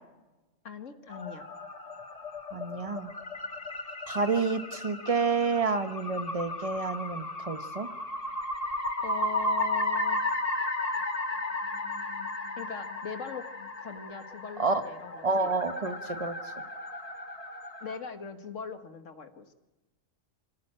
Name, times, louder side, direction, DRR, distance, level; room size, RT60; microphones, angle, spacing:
voice 1, 0.6-1.5 9.0-10.2 12.6-13.5 13.8-15.5 17.8-19.5, left 5 dB, 75° left, 9 dB, 1.9 m, -41 dB
sound 1, 1.1-18.0, left 2 dB, 30° left, 1.8 m, -34 dB
voice 2, 2.5-3.1 4.1-7.9 14.6-14.8 15.2-16.5, right 4 dB, 30° right, 9 dB, 1.3 m, -29 dB
26.0 x 17.0 x 8.9 m, 1.1 s
omnidirectional pair, 1.3 m